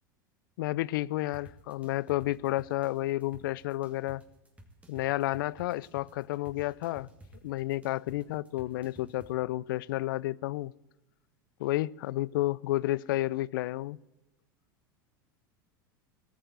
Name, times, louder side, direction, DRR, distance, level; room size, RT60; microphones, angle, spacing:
voice 1, 0.6-4.2 4.9-7.1 7.4-10.7 11.6-14.0, left 16 dB, 70° left, 0.4 m, -31 dB
sound 1, 1.3-9.3, right 1 dB, 10° right, 2.4 m, -54 dB
18.5 x 6.6 x 9.4 m
hypercardioid pair, 90°, 12 cm